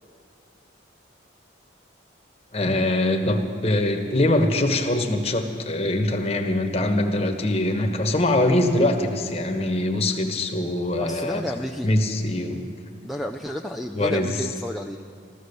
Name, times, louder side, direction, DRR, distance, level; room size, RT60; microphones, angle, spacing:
voice 1, 2.5-11.4 11.8-13.0 13.9-14.4, left 1 dB, 30° left, 4 dB, 1.2 m, -23 dB
voice 2, 11.0-11.9 13.0-15.0, equal, ahead, 5 dB, 0.3 m, -31 dB
15.0 x 14.0 x 6.8 m, 2.2 s
head